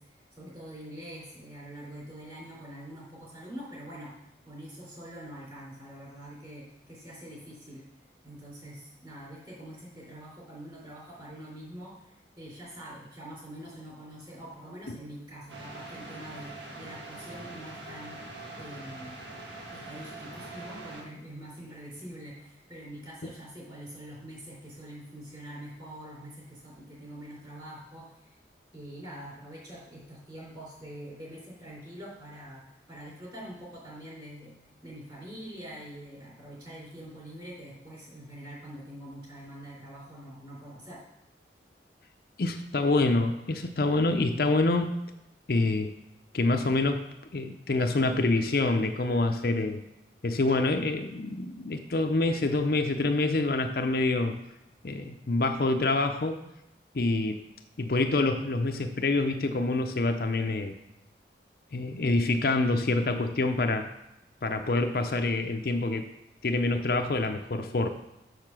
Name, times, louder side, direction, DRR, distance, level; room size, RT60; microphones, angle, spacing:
voice 1, 0.0-7.9 8.2-18.2 18.5-19.2 19.7-28.4 28.7-34.5 34.8-41.0, right 1 dB, 25° right, -5 dB, 3.7 m, -45 dB
sound 1, 15.5-21.0, right 2 dB, 85° right, 1.6 m, -43 dB
voice 2, 42.4-44.9 45.5-45.9 46.3-47.0 47.3-49.8 50.2-54.4 54.8-56.4 56.9-57.4 57.8-60.7 61.7-63.9 64.4-66.1 66.4-67.9, left 2 dB, 55° left, 5 dB, 0.6 m, -26 dB
6.7 x 6.4 x 6.1 m, 0.91 s
head